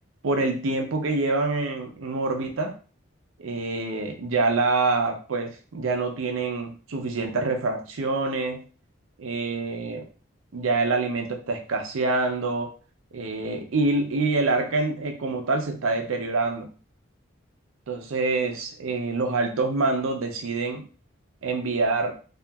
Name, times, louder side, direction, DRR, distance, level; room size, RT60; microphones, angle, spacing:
voice 1, 0.2-2.8 3.4-8.6 9.2-10.0 10.5-12.7 13.1-16.7 17.9-20.9 21.4-22.2, right 3 dB, 80° right, 4 dB, 0.5 m, -26 dB
2.8 x 2.4 x 2.3 m, 0.37 s
head